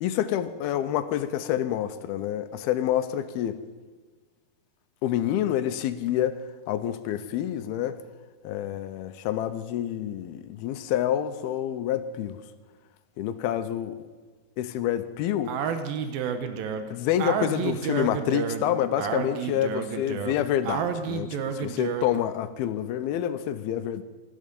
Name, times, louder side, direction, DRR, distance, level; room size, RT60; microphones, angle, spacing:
voice 1, 0.0-3.6 5.0-6.4 6.7-8.0 8.4-12.4 13.2-14.0 14.6-15.5 16.9-24.0, left 11 dB, 80° left, 11 dB, 2.6 m, -28 dB
Speech, 15.5-22.2, right 7 dB, 70° right, 2.7 m, -30 dB
18.0 x 14.5 x 5.3 m, 1.4 s
omnidirectional pair, 4.5 m